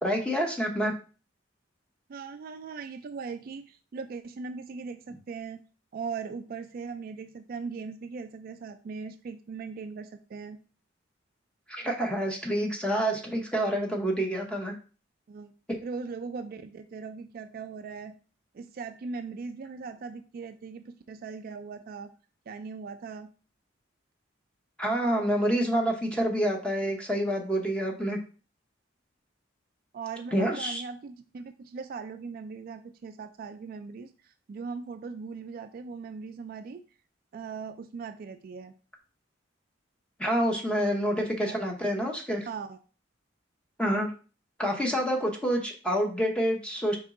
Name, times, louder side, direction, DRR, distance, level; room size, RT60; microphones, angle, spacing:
voice 1, 0.0-0.9 11.7-14.7 15.7-15.8 24.8-28.2 30.3-30.8 40.2-42.5 43.8-44.1 44.6-47.0, equal, 5° left, 1 dB, 0.8 m, -27 dB
voice 2, 2.1-5.6 5.9-10.6 15.3-15.5 15.8-18.2 18.5-22.1 22.5-23.3 29.9-36.8 37.3-38.7 41.4-41.6 42.5-42.8, right 5 dB, 50° right, 9 dB, 0.3 m, -39 dB
4.4 x 3.0 x 3.7 m, 0.37 s
head